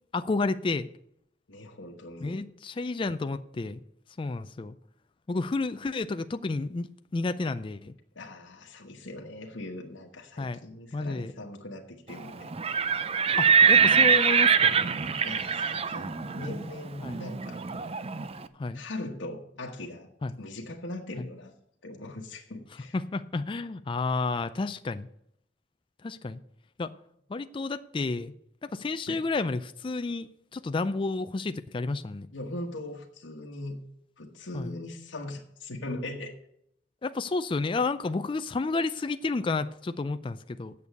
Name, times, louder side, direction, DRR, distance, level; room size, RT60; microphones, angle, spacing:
voice 1, 0.1-0.9 2.2-3.8 4.2-4.7 5.3-7.9 10.4-10.6 10.9-11.3 13.4-14.7 17.0-17.2 18.6-18.8 20.2-20.4 21.2-21.3 22.9-25.1 26.0-26.4 26.8-26.9 27.3-28.3 28.6-32.3 34.5-34.8 37.0-40.7, left 3 dB, 25° left, 11 dB, 0.4 m, -31 dB
voice 2, 1.5-2.4 8.1-12.8 14.8-14.9 15.2-17.7 18.4-18.5 18.7-20.1 20.4-21.5 21.8-23.0 29.1-29.2 32.3-33.8 34.2-36.4, left 1 dB, 85° left, -1 dB, 1.2 m, -40 dB
Livestock farm animals working animals, 12.5-18.3, right 6 dB, 30° right, 0.5 m, -23 dB
8.6 x 6.9 x 8.1 m, 0.75 s
head